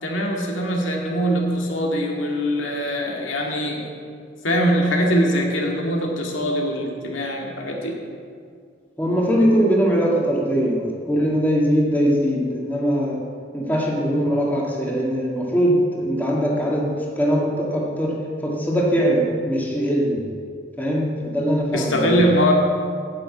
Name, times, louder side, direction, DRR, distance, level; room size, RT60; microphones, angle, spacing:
voice 1, 0.0-3.8 4.4-7.9 21.7-22.5, equal, 85° left, 0 dB, 2.0 m, -22 dB
voice 2, 9.0-13.2 13.5-20.3 20.8-22.1, equal, 10° left, -3 dB, 1.7 m, -21 dB
10.0 x 7.1 x 8.3 m, 2.2 s
head